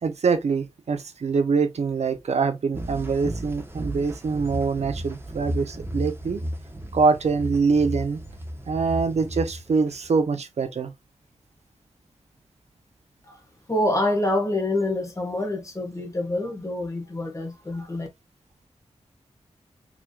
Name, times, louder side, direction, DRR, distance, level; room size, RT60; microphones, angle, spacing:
voice 1, 0.0-6.4 6.9-8.2 8.7-10.9, right 4 dB, 75° right, 0.7 m, -24 dB
sound 1, 2.7-10.2, equal, 20° right, 1.3 m, -34 dB
voice 2, 13.7-18.1, left 1 dB, 25° left, 1.8 m, -26 dB
4.8 x 3.6 x 2.4 m
wide cardioid pair, 65°, 11 cm